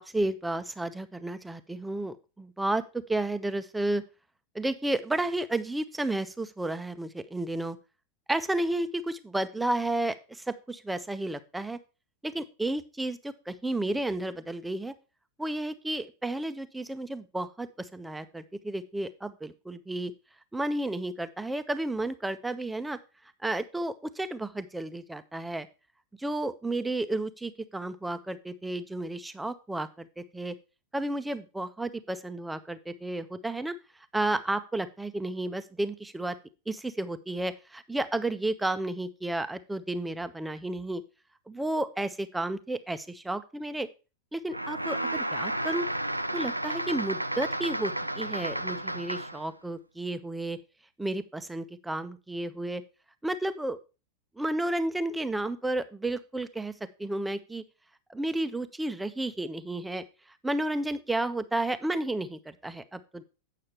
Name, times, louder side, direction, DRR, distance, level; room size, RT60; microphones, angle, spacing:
voice 1, 0.0-2.8 3.1-4.0 4.5-7.8 8.3-11.8 12.2-14.9 15.4-20.1 20.5-23.0 23.4-25.7 26.2-30.5 30.9-33.7 34.1-36.3 36.7-41.0 41.5-43.9 44.3-45.9 46.3-50.6 51.0-52.8 53.2-53.8 54.4-56.7 57.0-57.6 58.1-60.0 60.4-63.2, right 2 dB, 5° right, 11 dB, 0.7 m, -32 dB
sound 1, 44.5-49.5, right 1 dB, 85° right, 0.4 m, -32 dB
8.7 x 6.7 x 4.3 m, 0.31 s
figure-of-eight pair, 90°, 0 cm